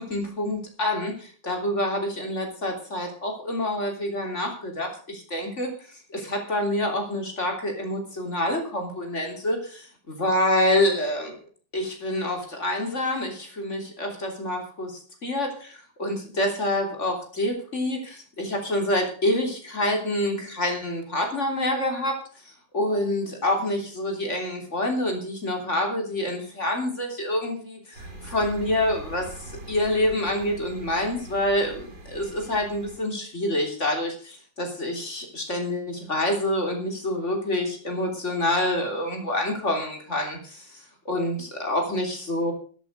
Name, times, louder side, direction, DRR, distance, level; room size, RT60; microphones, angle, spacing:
voice 1, 0.0-5.7 6.1-11.4 11.7-14.9 15.2-22.2 22.7-42.5, left 1 dB, 40° left, 3 dB, 3.6 m, -27 dB
sound 1, 27.9-33.0, right 2 dB, 85° right, 4.4 m, -42 dB
14.0 x 8.2 x 6.5 m, 0.43 s
omnidirectional pair, 1.9 m